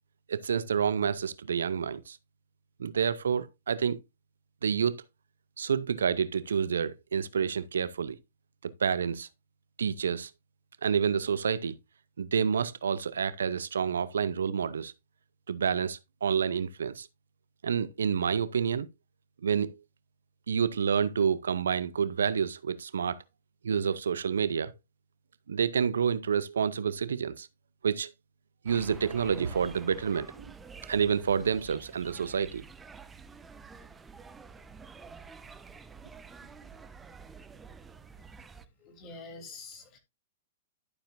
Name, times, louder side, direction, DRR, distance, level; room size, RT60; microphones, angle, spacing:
voice 1, 0.3-2.2 2.8-4.0 4.6-5.0 5.6-8.2 8.6-9.3 9.8-10.3 10.8-11.8 12.2-14.9 15.5-17.1 17.6-18.9 19.4-19.8 20.5-23.2 23.6-24.7 25.5-27.5 27.8-28.1 28.6-30.4 30.9-32.6, right 7 dB, 80° right, 0.6 m, -28 dB
sound 1, 28.7-38.7, right 5 dB, 15° right, 0.9 m, -49 dB
voice 2, 38.6-40.0, left 4 dB, 35° left, 3.3 m, -47 dB
12.0 x 7.1 x 2.6 m
hypercardioid pair, 115°, 0 cm